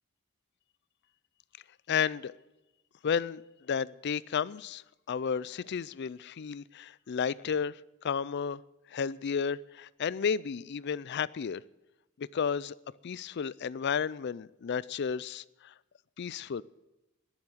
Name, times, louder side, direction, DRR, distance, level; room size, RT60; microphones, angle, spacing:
voice 1, 1.9-2.3 3.0-7.8 8.0-8.6 8.9-11.6 12.2-12.8 13.0-15.7 16.2-16.6, left 6 dB, 50° left, 21 dB, 0.4 m, -32 dB
19.5 x 7.2 x 7.8 m, 0.98 s
head